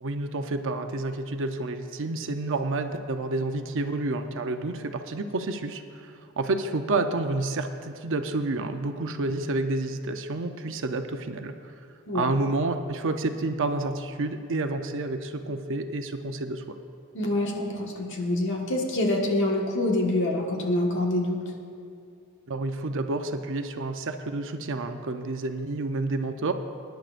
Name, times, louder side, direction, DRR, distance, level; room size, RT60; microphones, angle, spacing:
voice 1, 0.0-11.7 12.1-16.8 22.5-26.5, right 2 dB, 60° right, 6 dB, 0.7 m, -29 dB
voice 2, 17.1-21.4, left 1 dB, 55° left, 0 dB, 1.5 m, -26 dB
20.5 x 10.5 x 2.5 m, 2.5 s
head